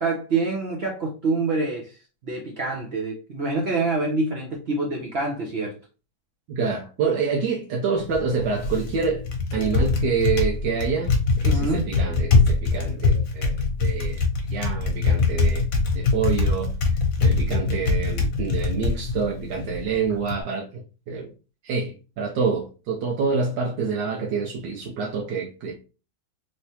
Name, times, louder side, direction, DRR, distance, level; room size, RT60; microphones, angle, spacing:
voice 1, 0.0-2.0 2.2-5.8 11.4-11.9, right 3 dB, 65° right, 0.6 m, -26 dB
voice 2, 6.5-9.2 9.5-11.1 11.4-14.2 14.5-15.6 15.9-16.7 17.2-20.8 21.1-21.3 21.6-25.8, right 5 dB, 80° right, 1.4 m, -27 dB
Typing, 8.0-20.4, left 3 dB, 60° left, 1.1 m, -23 dB
3.2 x 3.0 x 2.7 m
omnidirectional pair, 1.9 m